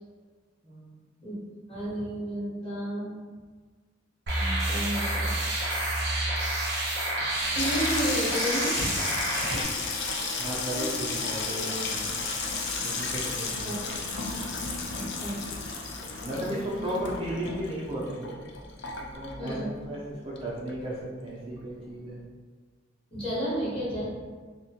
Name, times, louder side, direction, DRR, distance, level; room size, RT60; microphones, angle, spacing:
voice 1, 0.6-1.0 10.4-12.3 12.8-13.7 16.2-18.4 19.0-22.2, right 1 dB, 30° right, -6 dB, 0.5 m, -35 dB
voice 2, 1.7-3.2 4.4-5.3 7.5-9.6 10.1-10.4 10.7-11.0 13.6-13.8 14.9-15.4 16.2-16.9 19.4-19.7 23.1-24.0, equal, 30° left, -9 dB, 1.1 m, -33 dB
sound 1, 4.3-9.6, right 1 dB, 60° right, 0.8 m, -29 dB
Water tap faucet / Sink (filling or washing), 7.2-20.1 20.3-21.0 21.3-21.6, left 4 dB, 60° left, 0.4 m, -33 dB
2.7 x 2.1 x 2.7 m, 1.5 s
head